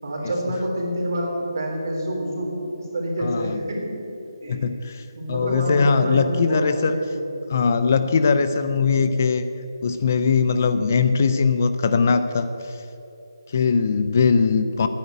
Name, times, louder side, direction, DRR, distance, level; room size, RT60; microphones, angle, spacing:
voice 1, 0.0-4.0 4.4-4.6 5.1-7.3, right 1 dB, 50° right, -2 dB, 3.8 m, -27 dB
voice 2, 3.2-3.6 4.5-7.0 7.5-9.4 9.8-12.8 13.5-14.9, left 5 dB, 35° left, 10 dB, 0.5 m, -20 dB
10.0 x 9.2 x 9.3 m, 2.9 s
hypercardioid pair, 170°, 2 cm